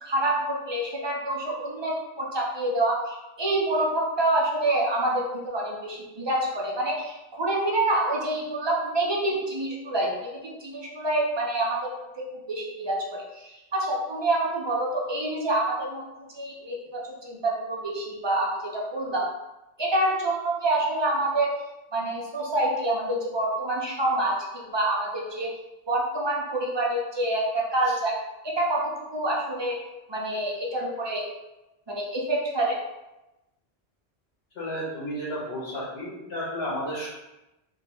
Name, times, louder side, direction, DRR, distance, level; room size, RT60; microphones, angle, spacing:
voice 1, 0.0-11.9 12.2-16.0 16.3-19.3 19.8-21.5 21.9-25.5 25.9-28.1 28.4-29.8 30.1-31.3 31.9-32.8, right 1 dB, 35° right, -2 dB, 0.5 m, -27 dB
voice 2, 34.5-37.1, equal, 70° left, -10 dB, 1.4 m, -32 dB
3.8 x 2.3 x 3.0 m, 0.98 s
omnidirectional pair, 1.1 m